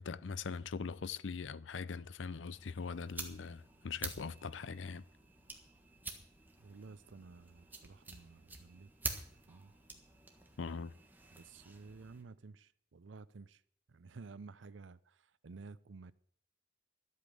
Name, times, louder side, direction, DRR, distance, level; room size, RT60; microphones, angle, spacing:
voice 1, 0.0-5.0 10.6-10.9, left 5 dB, 85° left, 0.5 m, -41 dB
sound 1, 2.5-12.2, right 3 dB, 10° right, 1.5 m, -48 dB
voice 2, 6.6-8.9 9.5-9.7 11.3-13.6 13.9-16.1, right 4 dB, 80° right, 0.6 m, -53 dB
12.5 x 8.4 x 7.7 m
head